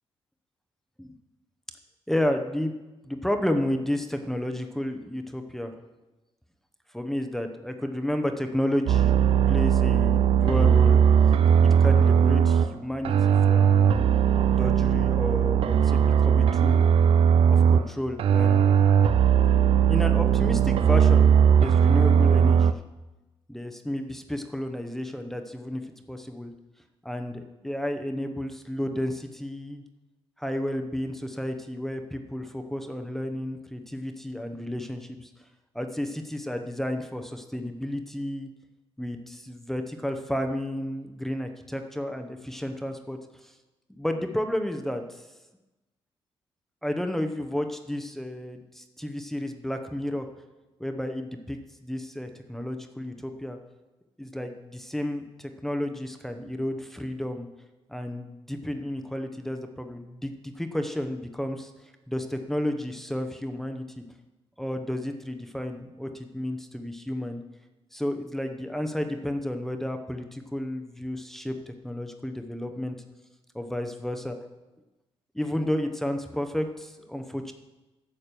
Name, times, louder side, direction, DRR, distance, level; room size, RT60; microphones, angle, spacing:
voice 1, 2.1-2.7 3.0-5.7 6.9-9.1 9.5-11.0 11.6-14.2 14.5-16.8 17.5-18.6 19.9-22.8 23.5-25.8 26.1-26.5 27.0-29.8 30.4-35.3 35.7-38.5 39.0-43.5 43.9-45.2 46.8-50.3 50.8-53.6 54.2-57.5 57.9-61.7 62.1-64.0 64.6-67.4 67.9-73.0 73.5-74.4 75.3-77.5, left 1 dB, 5° left, 6 dB, 0.8 m, -32 dB
sound 1, 8.9-12.7 13.0-17.9 18.2-22.7, right 8 dB, 65° right, 0.4 m, -19 dB
9.0 x 7.3 x 6.8 m, 1.1 s
cardioid pair, 125°, 10 cm